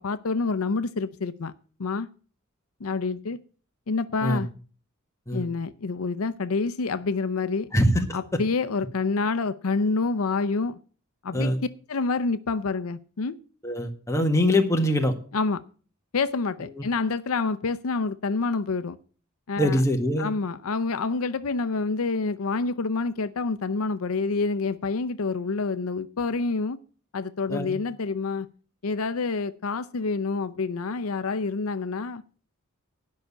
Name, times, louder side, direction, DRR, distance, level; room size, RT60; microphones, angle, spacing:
voice 1, 0.0-1.5 1.8-2.1 2.8-3.4 3.9-4.5 5.3-7.7 8.1-10.8 11.2-11.5 11.9-13.4 15.3-15.6 16.1-19.0 19.5-19.8 20.2-26.8 27.1-28.5 28.8-32.2, left 4 dB, 80° left, 0.6 m, -27 dB
voice 2, 7.7-8.4 11.3-11.6 13.6-15.1 19.6-20.3 27.5-27.7, left 1 dB, 15° left, 1.5 m, -23 dB
10.5 x 5.7 x 8.3 m
head